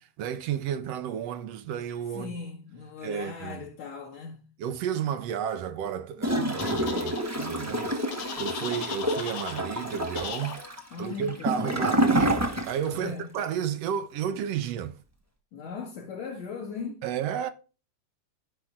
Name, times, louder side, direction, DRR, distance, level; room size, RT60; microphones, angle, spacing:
voice 1, 0.2-2.3 3.0-3.6 4.6-10.6 11.0-14.9 17.0-17.5, right 8 dB, 70° right, 1.7 m, -32 dB
voice 2, 2.1-4.5 10.9-11.9 13.0-13.3 15.5-17.0, left 5 dB, 65° left, 3.0 m, -38 dB
Gurgling / Toilet flush, 6.2-13.0 13.3-13.4, equal, 10° right, 0.7 m, -28 dB
sound 1, 6.6-7.2 8.1-9.6 10.2-10.6, left 7 dB, 90° left, 2.8 m, -37 dB
14.0 x 5.7 x 3.7 m
omnidirectional pair, 3.4 m